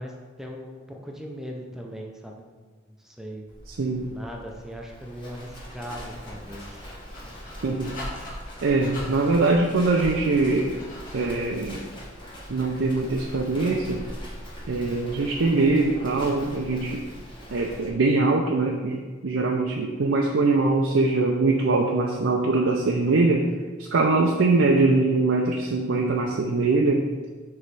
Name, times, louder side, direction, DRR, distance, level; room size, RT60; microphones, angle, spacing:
voice 1, 0.0-3.5 4.0-6.9, equal, ahead, 0 dB, 0.5 m, -39 dB
Livestock farm animals working animals, 3.5-17.9, equal, 25° left, 1.2 m, -42 dB
voice 2, 3.7-4.1 7.6-7.9 8.6-10.7 11.1-11.8 12.5-14.0 14.7-17.0 17.5-23.5 23.8-27.1, right 3 dB, 85° right, 0 dB, 0.5 m, -22 dB
Dog, 5.4-11.5, left 1 dB, 45° left, 1.4 m, -41 dB
6.7 x 3.1 x 4.7 m, 1.4 s
head